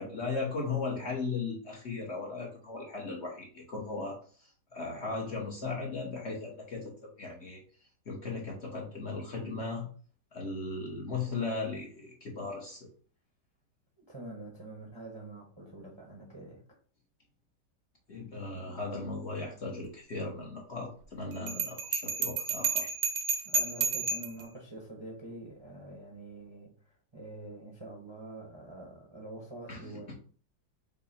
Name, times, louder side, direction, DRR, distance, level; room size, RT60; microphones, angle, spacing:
voice 1, 0.0-7.6 8.1-9.9 10.3-12.9 18.1-22.9 29.7-30.1, left 3 dB, 45° left, 1.0 m, -37 dB
voice 2, 0.7-1.0 14.1-16.8 23.4-30.1, right 2 dB, 20° right, 0.8 m, -46 dB
Bell, 21.5-24.4, right 5 dB, 80° right, 0.6 m, -31 dB
5.6 x 2.1 x 4.2 m
omnidirectional pair, 1.9 m